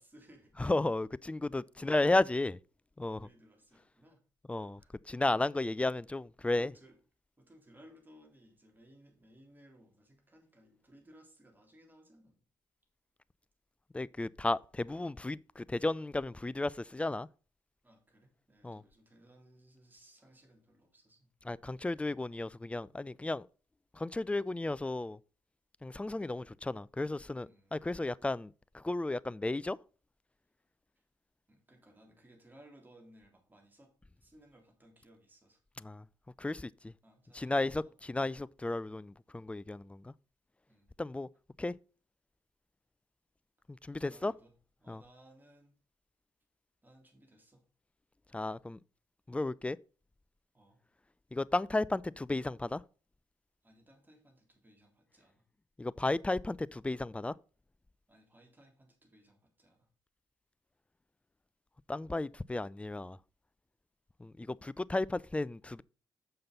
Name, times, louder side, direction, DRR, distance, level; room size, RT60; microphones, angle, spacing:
voice 1, 0.0-0.5 1.8-1.9 3.2-4.2 4.6-4.9 6.5-6.9 7.4-12.4 17.8-21.3 21.8-21.9 27.4-27.9 31.5-33.9 34.2-35.6 37.0-37.9 40.7-40.9 44.0-44.5 44.8-45.7 46.8-47.6 50.5-50.8 53.6-55.4 58.1-59.9, right 1 dB, 20° right, 3.4 m, -61 dB
voice 2, 0.6-2.6 3.0-3.3 4.5-4.8 5.1-6.7 13.9-17.3 18.6-18.8 21.4-23.5 23.9-25.2 25.8-29.8 35.8-36.0 36.4-36.9 37.3-40.1 41.0-41.3 41.6-41.7 43.8-44.3 44.9-45.0 48.3-48.8 49.3-49.8 51.3-52.8 55.8-57.3 61.9-63.2 64.2-65.8, left 2 dB, 10° left, 0.3 m, -33 dB
6.9 x 5.7 x 5.4 m
hypercardioid pair, 45°, 10 cm